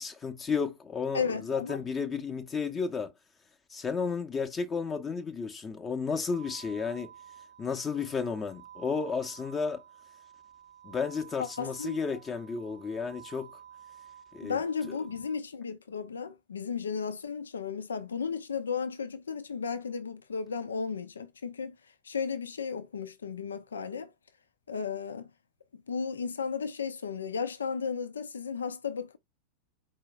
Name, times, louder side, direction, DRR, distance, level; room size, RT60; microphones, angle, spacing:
voice 1, 0.0-3.1 3.7-7.1 7.6-9.8 10.8-13.6 14.3-14.6 14.9-15.0, left 5 dB, 20° left, 0.8 m, -33 dB
voice 2, 1.1-1.8 11.4-12.2 14.4-21.7 22.0-24.1 24.7-25.3 25.9-29.2, left 6 dB, 70° left, 0.6 m, -34 dB
sound 1, 6.3-15.3, right 9 dB, 20° right, 0.7 m, -52 dB
4.8 x 2.7 x 3.4 m
figure-of-eight pair, 90°, 0 cm